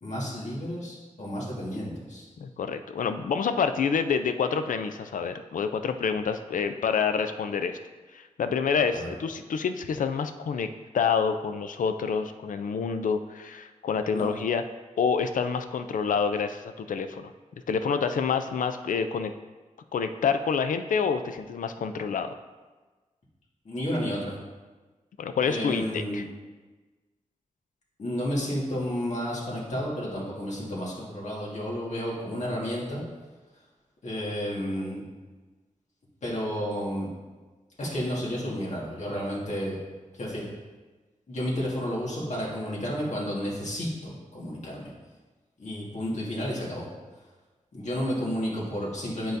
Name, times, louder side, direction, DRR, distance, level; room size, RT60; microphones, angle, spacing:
voice 1, 0.0-2.3 8.9-9.1 14.1-14.3 23.7-24.4 25.5-26.2 28.0-33.0 34.0-35.0 36.2-37.1 37.8-39.8 40.1-40.5 41.3-44.9 45.6-46.9 47.7-49.4, equal, 60° left, -5 dB, 1.7 m, -31 dB
voice 2, 2.4-7.8 8.1-10.7 10.9-14.6 15.0-17.3 17.7-19.3 19.9-22.3 25.2-26.2, left 6 dB, 80° left, 9 dB, 0.4 m, -27 dB
10.5 x 3.8 x 2.6 m, 1.3 s
wide cardioid pair, 90°, 13 cm